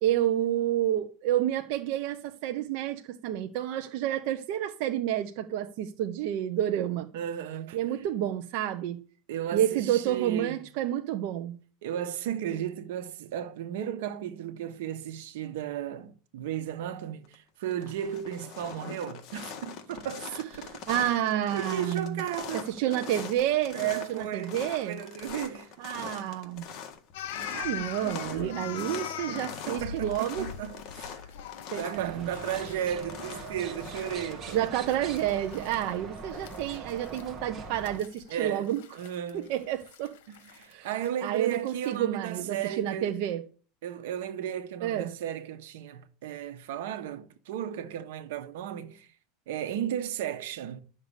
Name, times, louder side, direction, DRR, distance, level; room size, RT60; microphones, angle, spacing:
voice 1, 0.0-7.1 7.7-9.0 9.5-11.6 20.9-22.2 22.5-23.8 24.1-25.0 25.8-26.6 27.5-30.5 31.7-32.3 34.5-38.8 39.3-40.1 40.7-40.9 41.2-43.4 44.8-45.1, right 12 dB, 55° right, 0.9 m, -29 dB
voice 2, 7.1-7.8 9.3-10.6 11.8-20.8 21.5-23.0 23.7-26.4 27.3-27.6 28.0-28.9 29.3-31.2 31.7-34.6 38.3-38.7 39.0-39.5 40.3-43.1 43.8-49.1 49.5-50.8, right 10 dB, 75° right, 1.4 m, -35 dB
sound 1, 17.0-17.3 17.7-35.5, left 7 dB, 40° left, 1.8 m, -43 dB
sound 2, 27.1-37.3 37.7-42.0, left 8 dB, 75° left, 1.6 m, -42 dB
sound 3, 31.9-38.0, right 4 dB, 25° right, 1.9 m, -42 dB
12.0 x 6.7 x 8.2 m
supercardioid pair, 160°, 0 cm